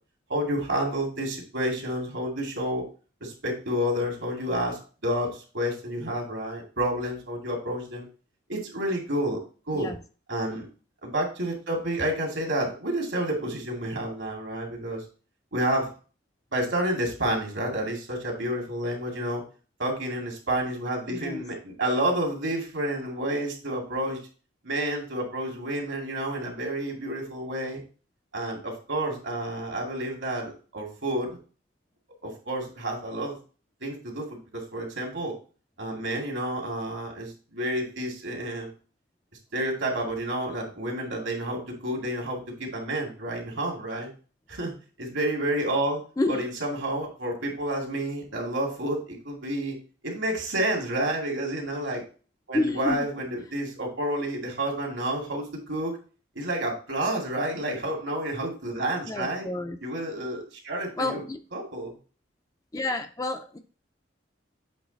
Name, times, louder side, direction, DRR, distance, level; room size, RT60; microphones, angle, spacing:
voice 1, 0.3-2.8 3.2-8.1 8.5-9.4 9.7-9.9 10.3-10.7 11.0-15.0 15.5-15.9 16.5-19.4 19.8-24.2 24.6-27.8 28.3-31.3 32.2-33.4 33.8-35.3 35.8-38.7 39.5-44.1 44.5-44.7 45.0-46.0 46.3-49.8 50.0-52.0 52.5-56.0 56.4-59.5 59.8-61.2 61.5-61.9, right 1 dB, 75° right, 2.3 m, -30 dB
voice 2, 21.1-21.4 46.2-46.4 52.5-53.1 59.1-59.8 61.0-61.4 62.7-63.6, left 2 dB, 20° left, 0.4 m, -29 dB
7.9 x 3.2 x 4.0 m
head